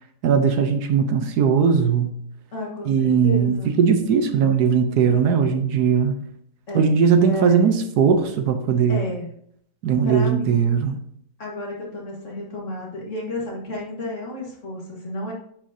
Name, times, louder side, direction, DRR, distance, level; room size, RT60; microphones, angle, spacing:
voice 1, 0.2-2.2 2.9-6.1 6.7-9.0 9.8-11.0, right 6 dB, 75° right, 8 dB, 1.2 m, -19 dB
voice 2, 2.5-3.7 6.7-7.0 7.2-7.7 8.9-9.3 10.0-10.8 11.4-15.3, left 1 dB, 45° left, -2 dB, 2.0 m, -31 dB
9.6 x 6.2 x 2.7 m, 0.69 s
omnidirectional pair, 1.8 m